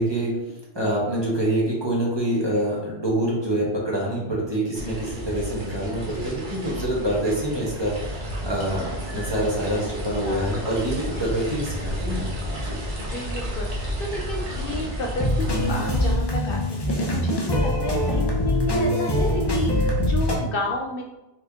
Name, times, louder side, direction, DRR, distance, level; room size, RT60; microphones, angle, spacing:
voice 1, 0.0-12.8, right 1 dB, 25° right, -5 dB, 1.2 m, -26 dB
sound 1, 4.7-16.1, equal, 50° right, 1.1 m, -32 dB
voice 2, 13.0-21.0, left 1 dB, 60° left, 1 dB, 0.7 m, -32 dB
sound 2, 15.2-20.4, left 1 dB, 25° left, 0.7 m, -23 dB
4.5 x 3.2 x 3.5 m, 1.0 s
omnidirectional pair, 1.2 m